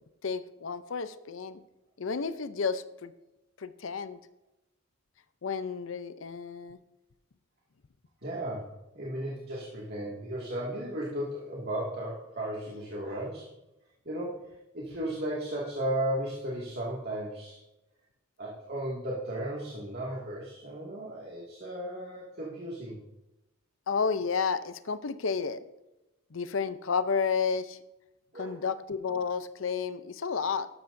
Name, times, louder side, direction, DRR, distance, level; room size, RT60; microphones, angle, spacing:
voice 1, 0.2-1.6 2.0-3.1 3.6-4.2 5.4-6.8 23.9-25.6 26.3-27.8 28.4-30.7, left 5 dB, 85° left, 13 dB, 0.6 m, -31 dB
voice 2, 8.2-13.5 14.1-17.6 18.4-23.0 28.3-28.6, right 1 dB, 55° right, -4 dB, 2.2 m, -35 dB
12.5 x 12.0 x 2.7 m, 0.94 s
head